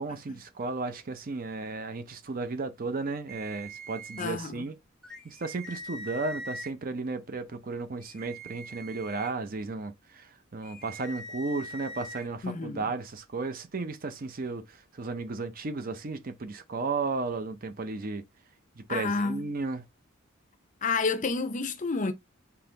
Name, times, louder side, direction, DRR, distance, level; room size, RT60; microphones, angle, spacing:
voice 1, 0.0-4.8 5.2-14.7 15.0-18.2 18.8-19.8, right 3 dB, 45° right, 0.6 m, -34 dB
sound 1, 3.3-4.2 5.0-6.7 8.0-9.3 10.6-12.3, right 1 dB, 5° left, 0.8 m, -42 dB
voice 2, 4.2-4.6 12.4-12.9 18.9-19.5 20.8-22.1, left 4 dB, 35° left, 0.5 m, -30 dB
3.9 x 2.8 x 3.8 m
head